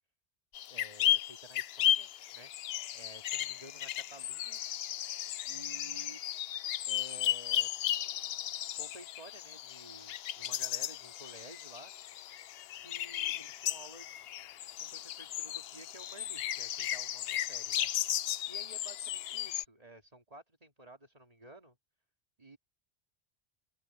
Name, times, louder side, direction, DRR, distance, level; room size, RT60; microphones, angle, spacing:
sound 1, 0.5-19.6, left 11 dB, 70° left, 0.7 m, -35 dB
voice 1, 0.7-2.5 2.9-4.6 5.4-6.2 6.8-7.7 8.7-11.9 12.8-14.1 14.8-17.9 18.5-21.8 22.4-22.6, right 1 dB, 35° right, 2.4 m, -53 dB
open air
omnidirectional pair, 1.2 m